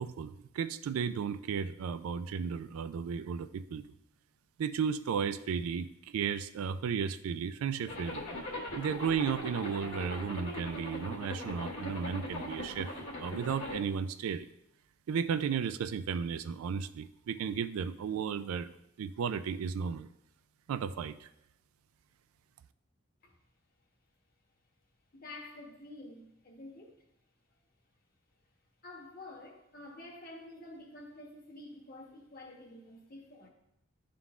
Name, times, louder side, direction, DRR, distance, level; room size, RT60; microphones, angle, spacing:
voice 1, 0.0-3.8 4.6-8.3 8.8-12.9 13.2-14.5 15.1-18.7 19.0-20.1 20.7-21.3, right 6 dB, 85° right, 13 dB, 0.3 m, -34 dB
Zipper (clothing), 7.9-13.8, left 1 dB, 70° left, 1.4 m, -40 dB
voice 2, 25.1-27.0 28.8-33.5, left 2 dB, 45° left, 1 dB, 1.0 m, -49 dB
11.0 x 3.8 x 2.4 m, 0.81 s
head